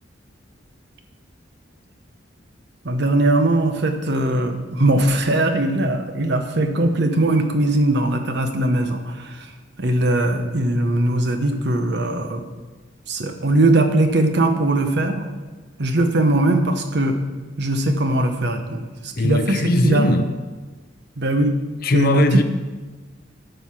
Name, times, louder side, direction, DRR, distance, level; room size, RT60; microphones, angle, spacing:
voice 1, 2.8-9.5 9.8-12.4 13.1-15.3 15.8-17.2 17.6-20.2 21.2-21.6 21.9-22.4, right 1 dB, 60° right, 0.9 m, -20 dB
voice 2, 19.2-20.3 21.8-22.4, left 2 dB, 50° left, 0.7 m, -19 dB
10.0 x 5.5 x 6.2 m
head